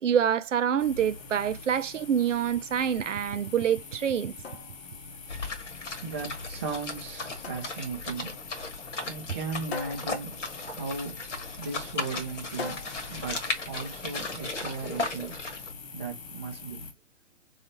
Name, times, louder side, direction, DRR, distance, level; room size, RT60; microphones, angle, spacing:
voice 1, 0.0-4.3, right 8 dB, 80° right, 0.5 m, -26 dB
sound 1, 0.8-16.9, left 4 dB, 30° left, 0.8 m, -45 dB
sound 2, 4.2-14.2, left 4 dB, 60° left, 0.9 m, -45 dB
sound 3, 5.3-15.7, left 3 dB, 75° left, 1.3 m, -36 dB
voice 2, 6.0-8.4 9.1-11.2 11.6-12.8 13.1-13.4 13.7-15.4 15.9-16.9, right 4 dB, 10° right, 0.3 m, -36 dB
3.9 x 3.2 x 2.7 m
figure-of-eight pair, 125°, 36 cm